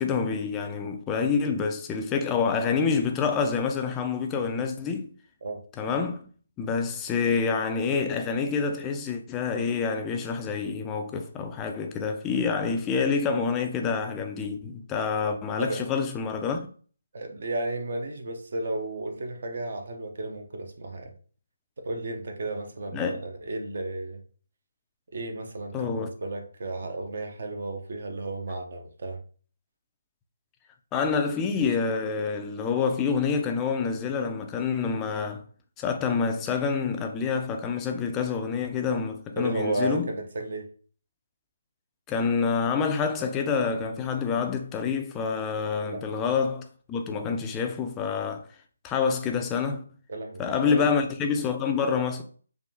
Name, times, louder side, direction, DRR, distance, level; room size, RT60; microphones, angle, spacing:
voice 1, 0.0-5.1 5.8-6.3 6.6-16.7 22.9-23.2 25.7-26.1 30.9-35.4 35.8-40.1 42.1-48.4 48.8-49.8 50.4-52.2, left 5 dB, 15° left, 0.4 m, -27 dB
voice 2, 17.1-21.1 21.8-24.2 25.1-29.2 39.4-40.7 45.8-46.0 50.1-50.9, right 2 dB, 55° right, 0.7 m, -33 dB
3.5 x 2.3 x 2.6 m
figure-of-eight pair, 150°, 0 cm